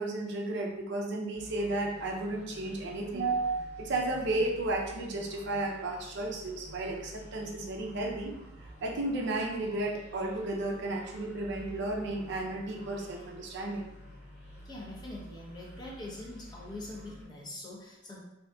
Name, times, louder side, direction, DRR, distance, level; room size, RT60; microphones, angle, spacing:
voice 1, 0.0-8.3 8.8-13.9, right 2 dB, 60° right, 0 dB, 0.5 m, -33 dB
sound 1, 1.4-17.3, equal, 40° right, 1.1 m, -50 dB
voice 2, 14.6-18.2, left 1 dB, 20° left, -4 dB, 0.7 m, -43 dB
3.7 x 2.7 x 2.2 m, 0.90 s
head